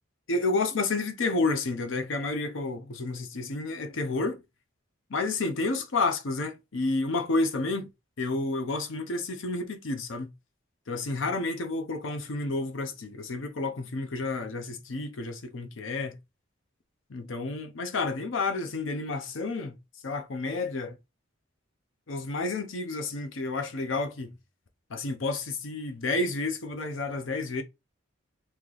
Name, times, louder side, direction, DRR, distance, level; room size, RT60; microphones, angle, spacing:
voice 1, 0.3-4.4 5.1-7.9 8.2-10.3 10.9-16.2 17.1-19.7 20.0-21.0 22.1-24.3 24.9-27.6, left 3 dB, 75° left, 0.7 m, -30 dB
3.1 x 2.9 x 3.8 m
head